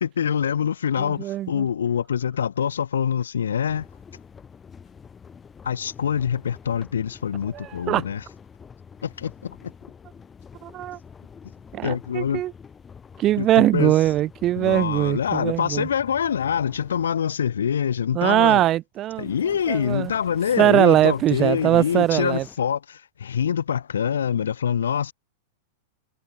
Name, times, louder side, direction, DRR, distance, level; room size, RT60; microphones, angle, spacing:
voice 1, 0.0-3.9 5.6-8.2 9.0-9.7 11.8-12.4 13.4-13.9 14.6-18.6 19.2-25.1, left 8 dB, 70° left, 0.4 m, -25 dB
voice 2, 1.0-1.6 7.5-8.0 10.6-11.0 11.7-12.5 13.2-15.9 18.1-19.3 19.7-20.1 20.6-22.4, right 13 dB, 35° right, 0.5 m, -21 dB
sound 1, 3.7-17.2 19.1-22.6, left 6 dB, 20° left, 1.6 m, -47 dB
figure-of-eight pair, 95°, 0 cm